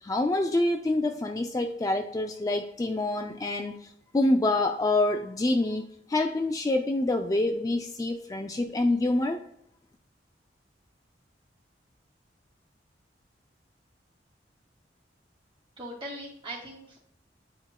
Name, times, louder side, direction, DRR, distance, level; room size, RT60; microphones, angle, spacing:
voice 1, 0.0-3.8 4.1-9.4, left 2 dB, 20° left, 4 dB, 0.4 m, -26 dB
voice 2, 15.8-17.0, right 1 dB, 30° right, -3 dB, 2.4 m, -40 dB
9.6 x 4.4 x 2.2 m, 0.71 s
head